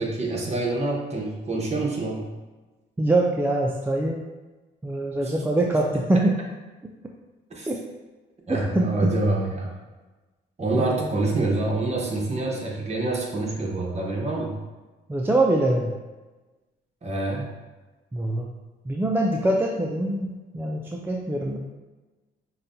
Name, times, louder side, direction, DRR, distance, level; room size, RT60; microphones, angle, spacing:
voice 1, 0.0-2.3 5.2-5.3 7.5-7.7 8.5-9.7 10.6-14.6 17.0-17.5, right 2 dB, 35° right, -2 dB, 1.0 m, -26 dB
voice 2, 3.0-4.2 4.8-6.4 7.7-7.8 8.5-9.1 10.7-11.1 15.1-15.9 18.1-18.5 18.9-21.6, right 2 dB, 10° right, -1 dB, 0.3 m, -24 dB
5.4 x 2.2 x 2.6 m, 1.2 s
cardioid pair, 90°, 20 cm